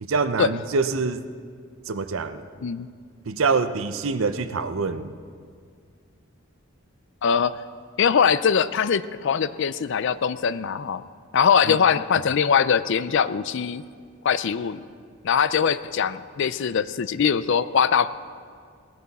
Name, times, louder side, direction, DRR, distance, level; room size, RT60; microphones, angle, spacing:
voice 1, 0.0-1.3 1.9-2.4 3.3-5.1 11.6-11.8, right 4 dB, 65° right, 11 dB, 0.6 m, -25 dB
voice 2, 7.2-7.5 8.0-11.0 11.3-13.8 14.2-14.8 15.2-18.1, left 7 dB, 55° left, 15 dB, 0.4 m, -22 dB
18.5 x 13.0 x 4.2 m, 2.1 s
head